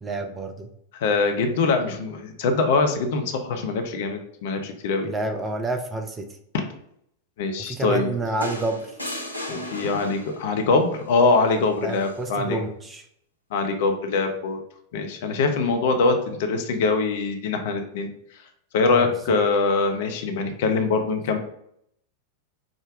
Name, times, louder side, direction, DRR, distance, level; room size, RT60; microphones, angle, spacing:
voice 1, 0.0-0.7 5.0-6.3 7.6-9.0 11.8-13.0 18.9-19.4, right 2 dB, 20° right, 5 dB, 0.6 m, -29 dB
voice 2, 0.9-5.1 7.4-8.1 9.5-12.6 13.5-14.6 14.9-18.1 18.7-21.4, left 3 dB, 55° left, 6 dB, 0.7 m, -23 dB
sound 1, 8.4-10.5 11.9-12.2, left 1 dB, 90° left, 0.5 m, -34 dB
5.0 x 2.2 x 4.7 m, 0.71 s
figure-of-eight pair, 90°, 0 cm